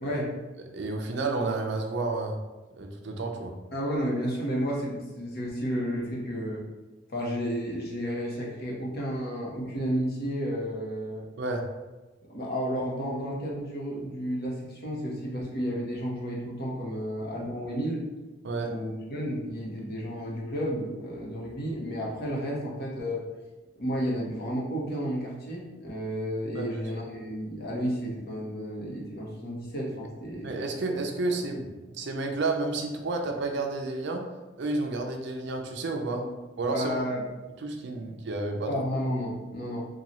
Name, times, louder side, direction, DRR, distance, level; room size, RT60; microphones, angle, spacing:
voice 1, 0.7-2.4 2.7-3.5 11.4-11.6 18.4-18.7 26.5-26.8 30.4-34.2 34.6-36.2 36.6-37.0 37.6-38.7, right 3 dB, 65° right, 3 dB, 0.5 m, -31 dB
voice 2, 3.7-6.6 7.1-11.3 12.3-18.0 18.6-23.2 23.8-30.5 36.2-36.3 36.7-37.2 38.0-38.1 38.7-39.9, equal, 55° left, -3 dB, 0.8 m, -32 dB
3.9 x 2.3 x 3.0 m, 1.1 s
head